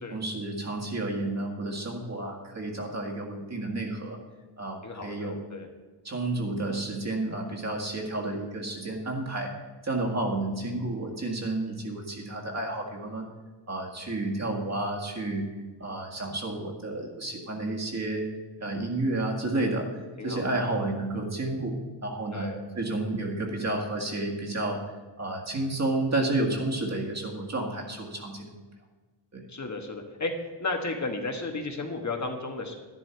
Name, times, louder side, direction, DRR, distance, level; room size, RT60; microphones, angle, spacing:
voice 1, 0.1-4.2 4.6-5.4 6.0-9.5 9.8-13.3 13.7-15.5 15.8-18.2 18.6-19.9 20.2-21.8 22.0-24.8 25.2-28.5 29.3-29.4, right 2 dB, 35° right, 0 dB, 1.9 m, -31 dB
voice 2, 4.8-5.7 20.2-20.9 22.3-22.6 29.5-30.3 30.6-32.8, left 3 dB, 40° left, 3 dB, 1.4 m, -34 dB
12.5 x 11.0 x 4.6 m, 1.3 s
wide cardioid pair, 160°, 43 cm